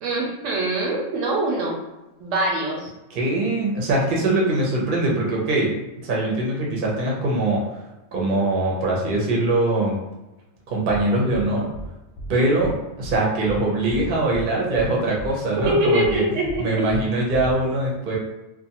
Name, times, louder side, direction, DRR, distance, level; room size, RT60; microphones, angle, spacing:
voice 1, 0.0-1.7 2.2-2.9 15.6-16.8, right 1 dB, 75° right, -1 dB, 0.9 m, -23 dB
voice 2, 3.1-5.7 6.0-7.6 8.1-10.0 10.7-11.7 12.3-16.2 16.6-18.2, right 2 dB, 50° right, -3 dB, 0.7 m, -22 dB
sound 1, 10.9-11.0 11.3-11.4 11.7-11.9 12.2-12.3 12.6-12.7 13.0-13.2 13.5-13.6 13.9-14.4 14.7-14.9 15.2-15.3 15.6-15.7 16.0-16.2 16.5-16.6 16.9-17.0 17.3-17.5, right 2 dB, 65° left, 0.8 m, -34 dB
2.5 x 2.2 x 2.8 m, 0.99 s
omnidirectional pair, 1.4 m